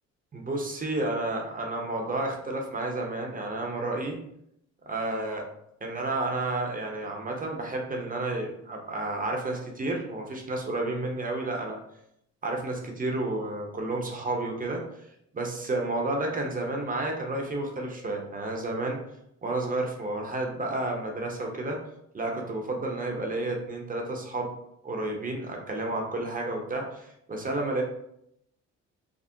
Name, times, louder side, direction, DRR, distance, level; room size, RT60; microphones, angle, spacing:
voice 1, 0.3-4.2 4.9-5.5 5.8-11.8 12.4-15.1 15.3-19.0 19.4-21.8 22.1-24.5 24.8-27.8, right 2 dB, 30° right, 1 dB, 0.6 m, -31 dB
3.6 x 2.0 x 2.6 m, 0.76 s
cardioid pair, 90°, 30 cm